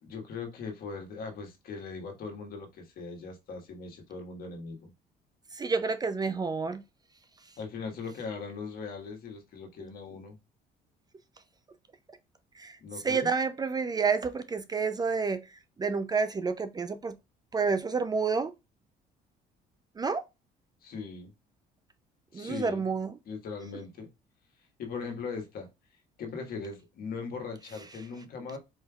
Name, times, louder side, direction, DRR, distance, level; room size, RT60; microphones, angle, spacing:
voice 1, 0.0-4.9 7.6-10.4 12.8-13.3 20.8-21.3 22.3-22.8 23.2-24.1 24.8-25.7 26.2-28.6, left 4 dB, 60° left, 1.5 m, -39 dB
voice 2, 5.6-6.8 12.6-12.7 13.0-15.4 15.8-17.1 17.5-18.5 20.0-20.2 22.3-23.1, right 5 dB, 25° right, 0.4 m, -29 dB
4.4 x 3.3 x 2.3 m
cardioid pair, 110°, 17 cm